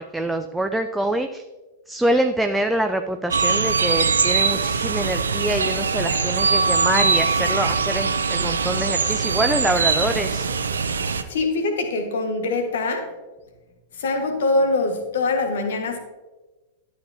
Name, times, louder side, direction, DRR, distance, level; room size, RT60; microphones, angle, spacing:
voice 1, 0.0-1.4 1.9-10.5, right 1 dB, 5° right, 6 dB, 0.4 m, -25 dB
sound 1, 3.3-11.2, right 5 dB, 70° right, 0.6 m, -22 dB
voice 2, 11.3-13.1 14.0-16.0, left 3 dB, 60° left, 4 dB, 1.6 m, -23 dB
12.0 x 7.5 x 2.8 m, 1.2 s
figure-of-eight pair, 100°, 0 cm